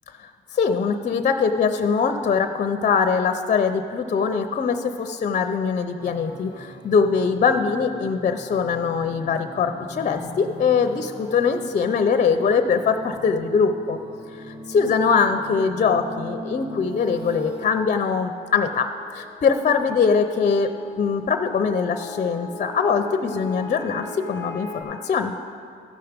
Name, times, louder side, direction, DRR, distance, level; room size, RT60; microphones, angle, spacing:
voice 1, 0.5-14.0 14.3-20.7 21.0-25.3, left 5 dB, 40° left, 8 dB, 0.5 m, -22 dB
sound 1, 6.0-24.8, left 1 dB, 20° right, 1.9 m, -40 dB
14.0 x 5.8 x 5.1 m, 2.4 s
cardioid pair, 90°, 20 cm